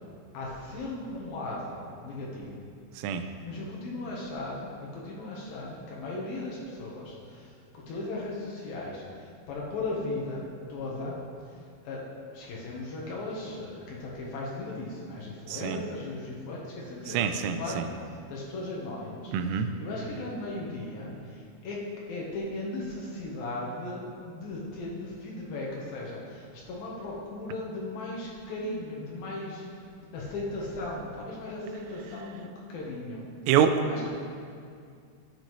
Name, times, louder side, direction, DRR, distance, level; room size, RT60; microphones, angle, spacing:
voice 1, 0.3-2.5 3.4-7.1 7.9-9.0 9.5-10.4 10.7-11.1 11.9-12.0 12.3-17.2 17.6-17.8 18.3-19.3 19.8-21.1 21.6-21.8 22.1-29.6 30.1-33.2 33.8-34.1, left 2 dB, 80° left, -4 dB, 2.0 m, -36 dB
voice 2, 15.5-15.8 17.1-17.9 19.3-19.7 33.5-33.8, right 8 dB, 85° right, 7 dB, 3.0 m, -26 dB
13.0 x 7.7 x 3.1 m, 2.3 s
omnidirectional pair, 5.8 m